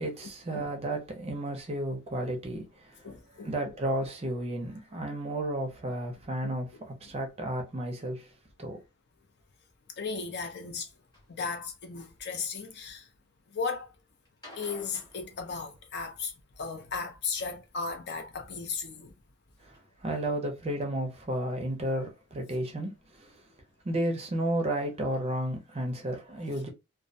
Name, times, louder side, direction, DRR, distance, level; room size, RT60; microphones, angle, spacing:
voice 1, 0.0-3.1 3.4-8.3 8.6-8.8 19.6-23.4 23.8-26.7, right 1 dB, 25° right, 0.5 m, -33 dB
voice 2, 3.0-3.8 6.4-6.5 10.0-10.9 11.3-13.0 13.5-13.9 14.6-16.3 16.6-19.1, left 5 dB, 50° left, 0.5 m, -36 dB
sound 1, 11.1-11.3 12.0-12.7 14.3-16.2 17.8-18.4 19.1-19.2 19.7-19.8 20.2-20.3 20.5-20.6, left 1 dB, 20° left, 0.9 m, -52 dB
2.2 x 2.1 x 2.6 m
head